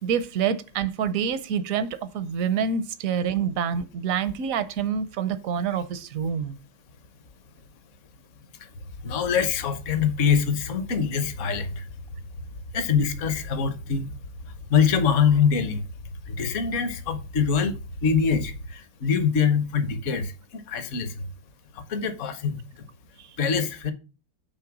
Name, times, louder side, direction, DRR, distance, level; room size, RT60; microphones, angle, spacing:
voice 1, 0.0-6.6 23.2-23.3, right 7 dB, 65° right, 0.9 m, -27 dB
sound 1, 8.7-18.7, left 1 dB, 65° left, 1.3 m, -40 dB
voice 2, 9.0-11.9 12.7-14.1 14.7-15.8 16.3-17.7 18.0-21.1 21.7-22.6 23.4-23.9, left 6 dB, 50° left, 1.0 m, -24 dB
8.7 x 3.3 x 5.9 m
omnidirectional pair, 2.1 m